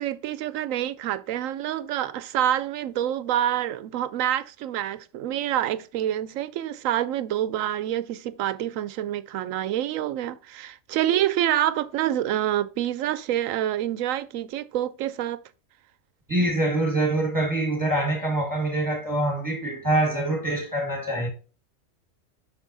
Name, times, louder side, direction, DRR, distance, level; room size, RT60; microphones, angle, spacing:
voice 1, 0.0-15.4, right 11 dB, 80° right, 1.0 m, -27 dB
voice 2, 16.3-21.3, right 1 dB, 15° right, 1.7 m, -25 dB
7.1 x 6.1 x 2.6 m
omnidirectional pair, 1.4 m